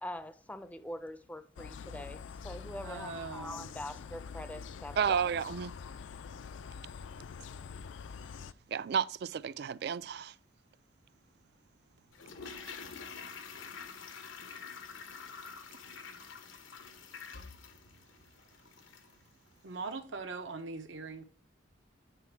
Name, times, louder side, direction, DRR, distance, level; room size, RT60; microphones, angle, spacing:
voice 1, 0.0-5.3, left 1 dB, 10° left, 0.4 m, -44 dB
sound 1, 1.6-8.5, left 6 dB, 70° left, 0.4 m, -45 dB
voice 2, 2.8-3.7 19.6-21.2, right 4 dB, 75° right, 0.8 m, -41 dB
voice 3, 5.0-5.7 8.7-10.3, right 7 dB, 55° right, 0.3 m, -32 dB
Toilet flush, 12.1-19.2 19.5-19.6, left 5 dB, 90° left, 0.9 m, -47 dB
9.3 x 4.0 x 4.6 m
head